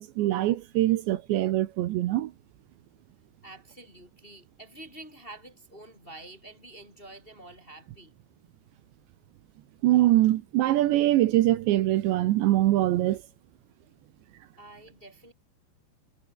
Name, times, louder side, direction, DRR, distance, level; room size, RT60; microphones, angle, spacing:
voice 1, 0.0-2.3 9.8-13.2, right 15 dB, 75° right, 3.1 m, -23 dB
voice 2, 3.4-8.1 14.6-15.3, right 2 dB, 15° left, 2.6 m, -48 dB
omnidirectional pair, 5.6 m